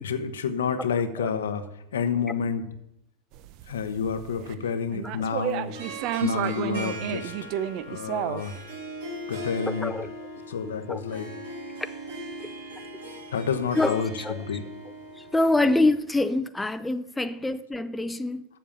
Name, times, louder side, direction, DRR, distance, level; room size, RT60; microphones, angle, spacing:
voice 1, 0.0-1.6 1.9-2.6 3.7-5.7 6.2-7.3 7.9-8.5 9.3-9.9 10.5-11.3 13.3-14.1 14.4-14.6, left 6 dB, 85° left, 0.8 m, -29 dB
sound 1, 3.3-4.5 4.9-8.6, right 11 dB, 55° right, 0.6 m, -31 dB
Harp, 5.6-16.0, equal, 75° right, 2.4 m, -39 dB
voice 2, 9.6-10.1 10.6-11.0 11.8-11.9 13.7-14.5 15.2-18.4, left 2 dB, 10° left, 0.4 m, -26 dB
7.4 x 7.0 x 7.1 m
hypercardioid pair, 100°, 0 cm